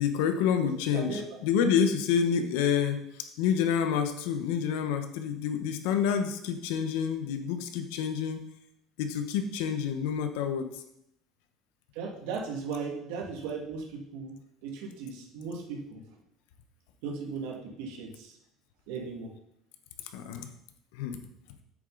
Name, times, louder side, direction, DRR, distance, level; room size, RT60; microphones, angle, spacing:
voice 1, 0.0-8.5 9.0-10.8 20.1-20.5 20.9-21.2, left 7 dB, 85° left, 7 dB, 1.0 m, -28 dB
voice 2, 0.6-1.2 11.9-14.4 14.6-16.0 17.0-18.3 18.9-19.3, right 5 dB, 80° right, 0 dB, 2.0 m, -37 dB
8.7 x 6.5 x 3.9 m, 0.77 s
cardioid pair, 150°, 0 cm